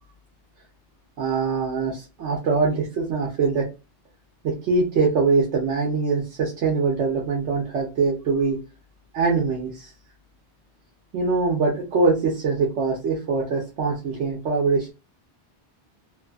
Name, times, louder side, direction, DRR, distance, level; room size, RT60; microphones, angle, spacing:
voice 1, 1.2-3.7 4.4-8.6 9.1-9.9 11.1-14.9, right 4 dB, 80° right, -2 dB, 1.0 m, -23 dB
2.5 x 2.4 x 2.3 m, 0.28 s
omnidirectional pair, 1.2 m